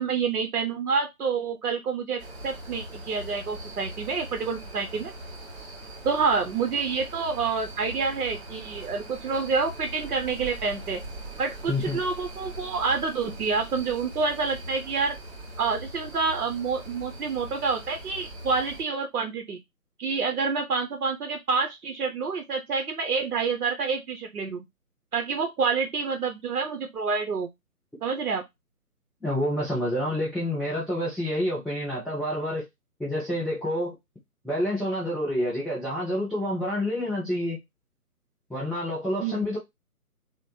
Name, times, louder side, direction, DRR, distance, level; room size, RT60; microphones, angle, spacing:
voice 1, 0.0-5.1 6.0-11.0 11.4-15.2 15.6-19.6 20.0-24.6 25.1-27.5 28.0-28.4 39.2-39.5, right 5 dB, 70° right, 0.7 m, -28 dB
sound 1, 2.2-18.8, right 1 dB, 45° right, 1.2 m, -41 dB
voice 2, 11.7-12.0 29.2-32.6 33.0-33.9 34.4-37.6 38.5-39.6, left 1 dB, ahead, 0.3 m, -28 dB
3.0 x 2.0 x 2.7 m
figure-of-eight pair, 155°, 46 cm